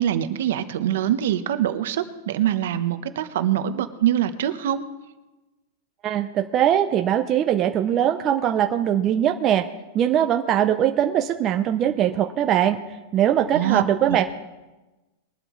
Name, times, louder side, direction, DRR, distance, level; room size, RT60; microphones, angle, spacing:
voice 1, 0.0-4.8 13.5-14.2, right 11 dB, 60° right, 10 dB, 0.9 m, -24 dB
voice 2, 6.0-9.7 9.9-12.8 13.1-14.2, right 10 dB, 20° right, 6 dB, 0.4 m, -21 dB
21.5 x 11.5 x 3.1 m, 1.1 s
supercardioid pair, 180°, 0 cm